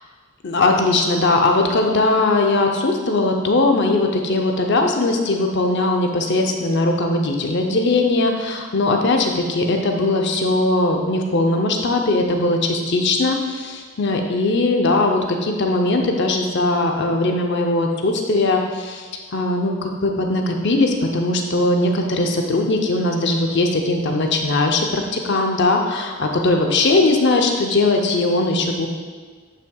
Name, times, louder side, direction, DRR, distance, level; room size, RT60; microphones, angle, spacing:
voice 1, 0.4-28.9, left 2 dB, 55° left, 3 dB, 0.7 m, -19 dB
10.0 x 5.6 x 2.4 m, 1.5 s
head